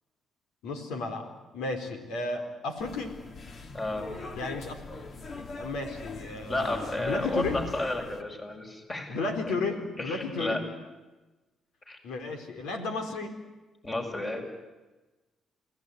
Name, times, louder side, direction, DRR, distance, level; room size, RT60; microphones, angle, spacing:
voice 1, 0.6-3.1 4.3-4.8 5.3-7.6 9.1-10.6 12.0-13.3, left 3 dB, 90° left, 6 dB, 4.5 m, -33 dB
sound 1, 2.8-8.2, left 4 dB, 45° left, 2.4 m, -42 dB
voice 2, 3.7-4.1 6.5-9.2 9.5-9.6 10.0-10.6 11.9-12.0 13.8-14.4, left 2 dB, 30° left, 3 dB, 7.0 m, -32 dB
29.5 x 19.0 x 9.7 m, 1.1 s
cardioid pair, 90°, 0 cm